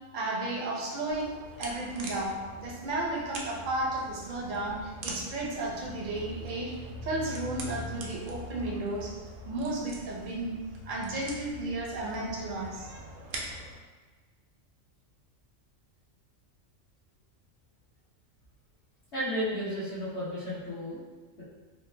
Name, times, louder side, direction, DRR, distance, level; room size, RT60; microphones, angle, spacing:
voice 1, 0.1-6.7 7.0-9.1 9.4-10.6 10.9-13.0, right 2 dB, 50° right, -3 dB, 0.7 m, -33 dB
sound 1, 1.1-13.7, right 1 dB, 80° right, 1.0 m, -43 dB
voice 2, 19.1-21.0 21.4-21.5, equal, 60° left, -10 dB, 1.1 m, -33 dB
3.2 x 2.2 x 3.2 m, 1.4 s
omnidirectional pair, 1.3 m